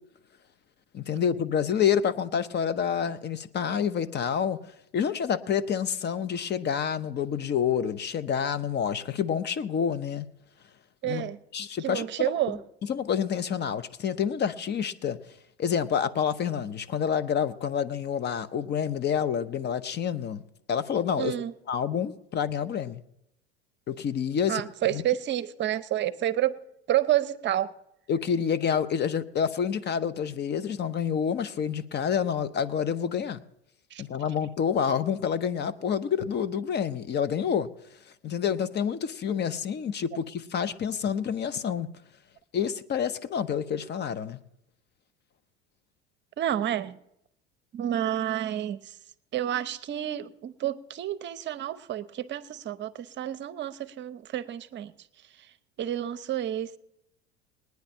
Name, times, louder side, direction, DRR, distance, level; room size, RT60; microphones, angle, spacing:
voice 1, 0.9-4.6 4.9-10.3 11.1-12.3 12.9-15.2 15.6-20.4 20.7-21.3 21.7-23.0 23.9-25.0 28.1-33.4 34.0-37.7 38.2-41.9 42.5-44.4, left 7 dB, 35° left, 16 dB, 0.9 m, -28 dB
voice 2, 11.0-11.4 11.8-12.6 21.2-21.5 24.5-26.6 26.9-27.7 33.9-34.0 46.4-47.0 47.7-49.0 49.3-54.9 55.4-55.5 55.8-56.8, right 12 dB, 35° right, 13 dB, 0.8 m, -29 dB
20.5 x 9.5 x 4.4 m, 0.81 s
figure-of-eight pair, 70°, 31 cm